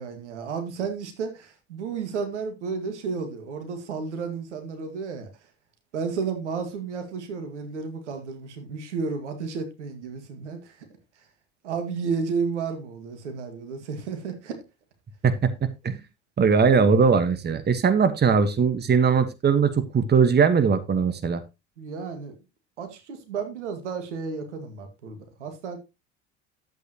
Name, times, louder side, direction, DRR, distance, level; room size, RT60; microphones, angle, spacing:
voice 1, 0.0-5.3 5.9-10.9 11.6-14.6 21.8-22.3 22.8-25.8, right 5 dB, 90° right, 2.0 m, -32 dB
voice 2, 16.4-21.4, right 5 dB, 30° right, 1.4 m, -20 dB
10.5 x 8.2 x 2.9 m
hypercardioid pair, 70°, 34 cm